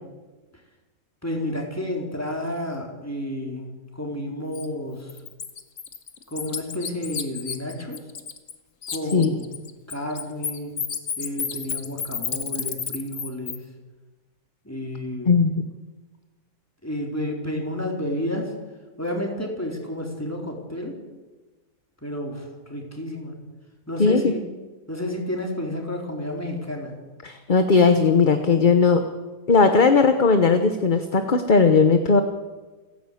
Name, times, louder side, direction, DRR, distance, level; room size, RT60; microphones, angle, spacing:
voice 1, 1.2-5.2 6.3-8.0 8.9-9.5 9.9-10.8 11.2-13.7 14.6-15.4 16.8-18.5 19.0-21.0 22.0-23.4 23.9-24.4 24.9-27.0, left 1 dB, 10° left, 0 dB, 3.9 m, -31 dB
Bird, 4.5-4.7 5.1-8.6 8.8-13.6, left 6 dB, 55° left, 1.6 m, -31 dB
voice 2, 24.0-24.3 27.2-29.0 29.5-32.2, left 4 dB, 35° left, 7 dB, 1.1 m, -17 dB
28.5 x 11.0 x 8.5 m, 1.3 s
omnidirectional pair, 1.7 m